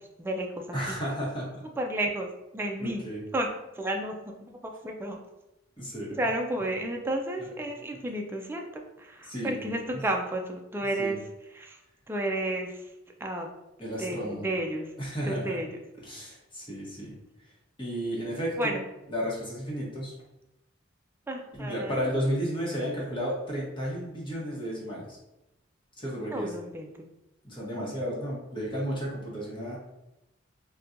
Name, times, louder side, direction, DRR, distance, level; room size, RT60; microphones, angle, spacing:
voice 1, 0.2-1.0 1.8-2.3 2.5-3.1 3.3-3.5 3.7-5.2 6.2-11.2 11.5-11.8 12.1-12.8 13.2-13.5 14.0-14.9 15.2-15.7 18.6-18.8 21.3-22.0 26.3-26.9 27.8-27.9, right 1 dB, 10° right, 2 dB, 0.3 m, -32 dB
voice 2, 0.7-1.6 2.8-3.2 5.8-6.2 9.3-10.0 11.0-11.2 13.8-14.4 15.0-15.6 16.0-17.2 17.8-18.7 19.1-20.1 21.6-25.2 26.0-26.5 27.4-29.8, equal, 25° left, -5 dB, 1.0 m, -33 dB
4.1 x 2.2 x 2.5 m, 0.93 s
head